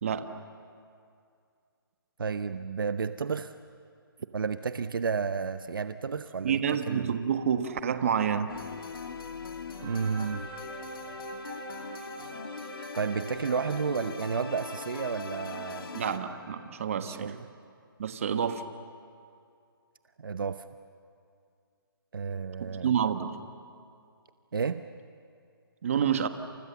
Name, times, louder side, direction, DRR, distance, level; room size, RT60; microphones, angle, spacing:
voice 1, 2.2-3.5 4.3-6.6 6.9-7.2 9.8-10.4 13.0-15.9 17.0-17.4 20.2-20.6 22.1-22.9 24.5-24.8, right 5 dB, 65° right, 10 dB, 0.9 m, -31 dB
voice 2, 6.4-8.5 15.9-17.3 18.0-18.6 22.6-23.4 25.8-26.3, right 8 dB, 35° right, 8 dB, 1.4 m, -28 dB
sound 1, 8.5-16.2, left 5 dB, 70° left, 2.3 m, -41 dB
sound 2, 9.8-16.6, right 1 dB, 15° right, 4.8 m, -45 dB
29.0 x 28.5 x 7.1 m, 2.3 s
hypercardioid pair, 170°, 12 cm